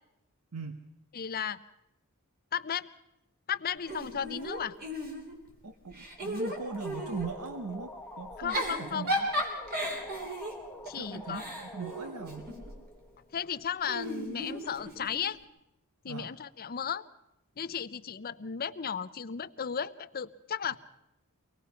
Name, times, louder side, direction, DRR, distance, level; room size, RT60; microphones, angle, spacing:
voice 1, 1.1-1.6 2.5-2.9 3.5-4.8 8.4-9.1 10.9-11.4 13.3-15.4 16.0-17.1 17.6-20.8, left 7 dB, 45° left, 14 dB, 0.6 m, -35 dB
Giggle / Chuckle chortle, 3.9-5.5 5.9-7.3 8.3-12.8 13.8-15.2, equal, 45° right, 3.5 m, -35 dB
voice 2, 5.6-9.3 10.9-12.5 16.1-16.4, right 4 dB, 75° right, 8 dB, 1.0 m, -40 dB
sound 1, 6.2-13.6, left 1 dB, 5° left, 1.2 m, -47 dB
24.0 x 18.5 x 5.7 m, 0.87 s
head